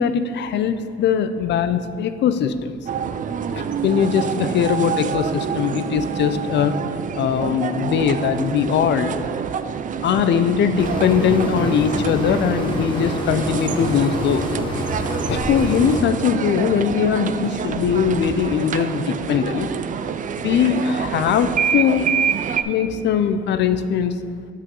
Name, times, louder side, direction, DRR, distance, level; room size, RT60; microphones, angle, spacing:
voice 1, 0.0-2.8 3.5-6.8 7.2-9.2 10.0-14.5 15.0-19.7 20.4-22.1 22.7-24.2, left 7 dB, 60° left, 11 dB, 0.4 m, -21 dB
sound 1, 2.9-22.6, right 7 dB, 40° right, 0.4 m, -27 dB
sound 2, 10.8-16.0, equal, 25° left, 1.1 m, -27 dB
8.2 x 4.9 x 3.8 m, 2.2 s
cardioid pair, 90°, 20 cm